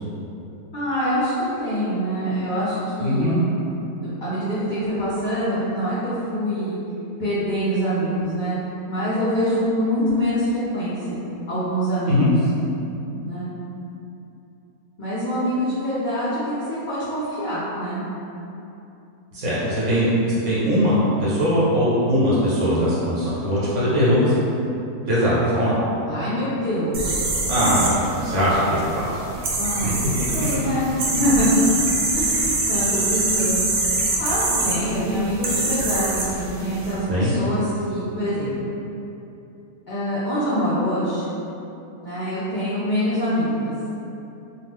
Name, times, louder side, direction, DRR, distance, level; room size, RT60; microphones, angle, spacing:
voice 1, 0.7-3.3 4.0-6.8 7.2-8.6 8.9-11.2 11.5-12.2 13.2-13.5 15.0-18.0 26.1-27.2 29.6-31.6 32.1-33.7 34.2-38.7 39.9-41.2 42.0-43.9, equal, 60° left, -11 dB, 0.5 m, -25 dB
voice 2, 3.0-3.4 12.1-12.3 19.3-24.3 25.1-25.8 27.5-29.1 29.8-29.9 37.1-37.3, equal, 60° right, -9 dB, 1.1 m, -20 dB
sound 1, 26.9-36.9, right 2 dB, 90° right, 0.5 m, -25 dB
2.6 x 2.5 x 3.5 m, 2.8 s
omnidirectional pair, 1.6 m